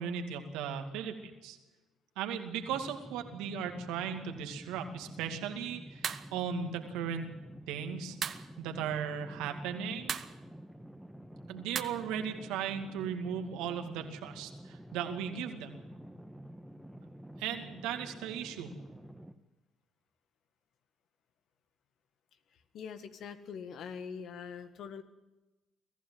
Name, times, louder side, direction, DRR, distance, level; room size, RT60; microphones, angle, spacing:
voice 1, 0.0-1.6 2.2-7.3 7.7-8.2 8.6-10.2 11.5-15.8 17.4-18.7, right 7 dB, 75° right, 6 dB, 2.3 m, -37 dB
sound 1, 2.6-19.4, equal, 5° right, 1.7 m, -50 dB
sound 2, 6.0-6.3 8.2-8.5 10.1-10.4 11.7-11.8, right 8 dB, 55° right, 1.1 m, -35 dB
voice 2, 22.7-25.0, left 6 dB, 65° left, 10 dB, 1.7 m, -43 dB
24.0 x 15.0 x 7.7 m, 1.1 s
hypercardioid pair, 50°, 0 cm